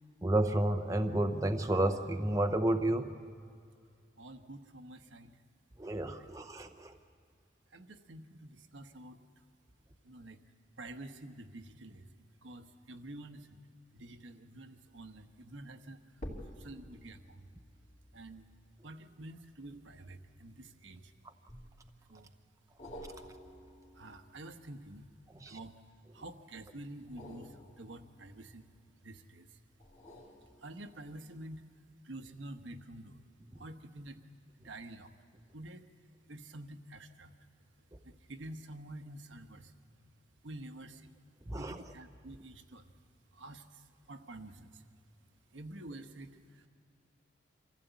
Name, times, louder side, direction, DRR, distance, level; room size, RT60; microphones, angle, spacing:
voice 1, 0.2-3.1 5.8-6.9 25.4-25.6 41.5-41.8, right 1 dB, 15° right, 6 dB, 0.7 m, -31 dB
voice 2, 4.2-5.4 6.2-6.3 7.7-9.2 10.0-10.4 10.8-12.1 12.4-13.6 13.9-16.0 16.5-17.5 18.1-18.5 18.8-21.1 22.1-22.3 23.9-25.1 25.5-25.7 26.1-28.7 29.0-29.5 30.6-31.6 32.0-33.2 33.6-34.2 34.6-35.1 35.5-35.9 36.3-37.3 38.0-39.7 40.4-41.1 41.6-42.8 43.3-44.8 45.5-46.7, right 1 dB, 75° right, 6 dB, 1.1 m, -48 dB
sound 1, 14.9-15.3 16.1-20.8 21.5-22.1 22.8-25.8 27.0-29.1 29.8-31.2 31.7-31.8, equal, 35° left, 3.0 m, -52 dB
25.0 x 15.5 x 8.1 m, 2.3 s
head